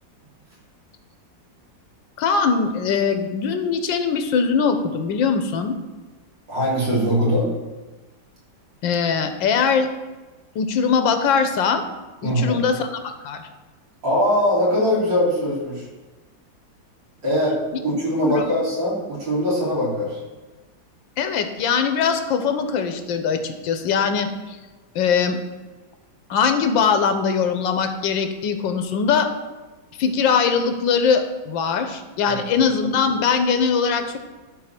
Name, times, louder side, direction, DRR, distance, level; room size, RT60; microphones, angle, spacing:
voice 1, 2.2-5.8 8.8-9.9 10.5-11.8 12.2-12.9 13.2-13.5 18.2-18.4 21.2-24.6 24.9-25.4 26.3-29.3 30.0-34.2, left 6 dB, 90° left, 8 dB, 1.6 m, -21 dB
voice 2, 6.5-7.5 12.2-12.6 14.0-15.8 17.2-20.2 32.3-32.4, equal, 80° right, -6 dB, 4.2 m, -21 dB
12.0 x 4.1 x 5.9 m, 1.2 s
omnidirectional pair, 2.0 m